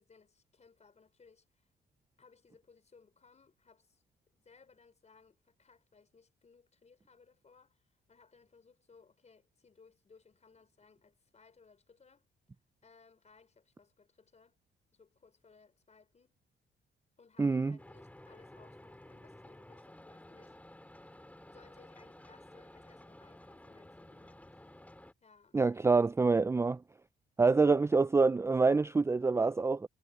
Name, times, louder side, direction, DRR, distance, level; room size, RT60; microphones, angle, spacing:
voice 1, 0.0-1.7 2.2-4.0 4.3-12.2 12.8-14.6 14.9-16.3 17.2-20.6 21.5-24.8 25.2-25.9, left 5 dB, 35° left, 5.1 m, -63 dB
voice 2, 17.4-17.8 25.5-26.8 27.4-29.9, right 4 dB, 15° right, 0.4 m, -26 dB
sound 1, 17.8-25.1, left 1 dB, 5° left, 2.2 m, -54 dB
cardioid pair, 90°, 20 cm